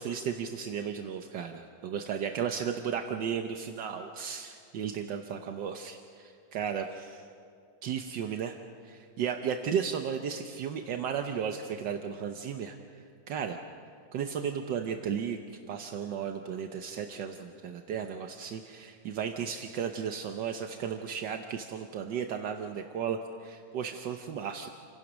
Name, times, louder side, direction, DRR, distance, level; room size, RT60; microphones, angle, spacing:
voice 1, 0.0-7.3 7.8-8.5 8.8-12.8 13.3-13.6 14.1-15.4 15.7-24.7, right 7 dB, 75° right, 5 dB, 1.5 m, -34 dB
28.5 x 16.5 x 6.2 m, 2.3 s
omnidirectional pair, 2.0 m